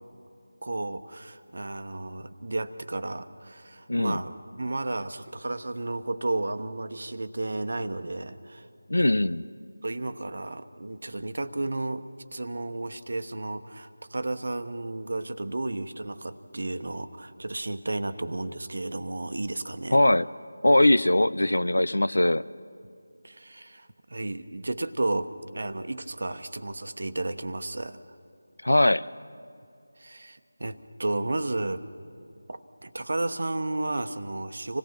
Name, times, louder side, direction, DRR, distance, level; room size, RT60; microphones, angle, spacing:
voice 1, 0.6-8.6 9.8-12.1 12.3-20.0 23.2-28.0 30.0-31.9 32.5-34.8, right 2 dB, 60° right, 10 dB, 1.0 m, -33 dB
voice 2, 3.9-4.2 8.9-9.4 19.9-20.3 20.6-22.4 28.6-29.1, left 1 dB, 75° left, 16 dB, 0.6 m, -21 dB
26.5 x 17.5 x 5.8 m, 2.5 s
figure-of-eight pair, 165°, 0 cm